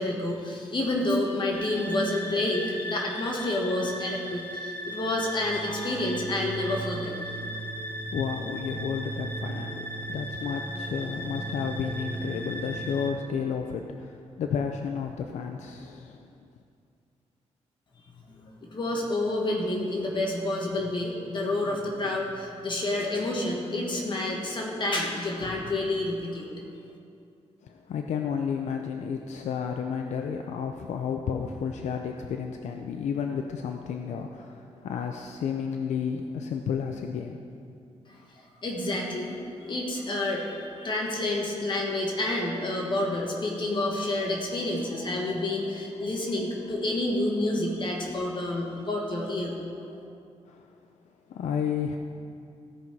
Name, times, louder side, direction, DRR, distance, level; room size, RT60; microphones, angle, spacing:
voice 1, 0.0-7.2 18.3-26.6 38.6-39.4 39.6-49.7, left 1 dB, 40° left, -1 dB, 1.5 m, -29 dB
sound 1, 1.5-13.1, right 1 dB, 15° left, 1.0 m, -36 dB
voice 2, 8.1-16.2 27.6-37.4 38.1-38.3 50.5-50.8 51.3-52.0, left 7 dB, 75° left, 4 dB, 0.5 m, -32 dB
16.5 x 5.5 x 4.6 m, 2.4 s
cardioid pair, 105°, 12 cm